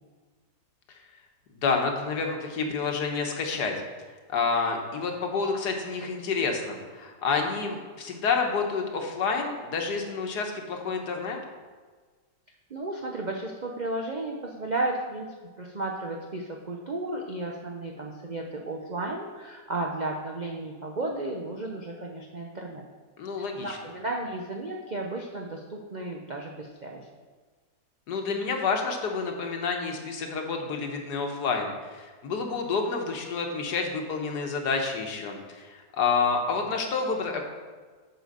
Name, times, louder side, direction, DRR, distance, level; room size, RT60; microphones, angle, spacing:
voice 1, 1.5-3.7 4.3-11.4 23.2-23.8 28.1-37.4, left 4 dB, 65° left, 3 dB, 1.6 m, -29 dB
voice 2, 12.7-15.3 15.6-22.8 23.4-27.1, right 2 dB, 80° right, 0 dB, 0.4 m, -33 dB
8.5 x 5.0 x 6.6 m, 1.4 s
omnidirectional pair, 1.9 m